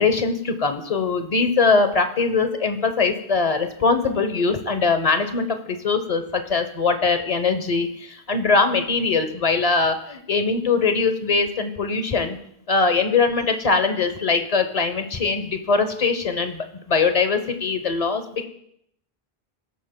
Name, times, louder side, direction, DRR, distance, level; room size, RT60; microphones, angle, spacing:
voice 1, 0.0-12.4 12.7-18.5, left 4 dB, 40° left, 8 dB, 0.9 m, -22 dB
18.5 x 8.5 x 2.2 m, 0.73 s
omnidirectional pair, 1.0 m